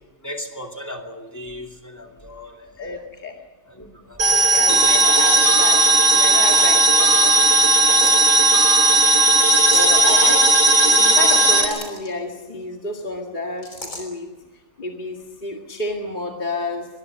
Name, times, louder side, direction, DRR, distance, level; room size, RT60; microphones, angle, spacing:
voice 1, 0.2-2.7 2.9-3.1 3.8-5.2 7.5-7.9, left 1 dB, 10° left, 2 dB, 2.7 m, -37 dB
voice 2, 2.8-3.3 4.4-7.3 9.7-10.4 10.9-14.3 14.8-16.9, left 2 dB, 30° left, 1 dB, 2.1 m, -30 dB
sound 1, 4.2-11.7, right 2 dB, 50° right, 3.1 m, -15 dB
sound 2, 4.5-5.3 6.4-6.8 7.8-8.3 9.6-10.0 11.2-12.1 13.6-14.0, left 1 dB, 50° left, 5.1 m, -34 dB
23.5 x 21.0 x 6.4 m, 1.2 s
omnidirectional pair, 1.7 m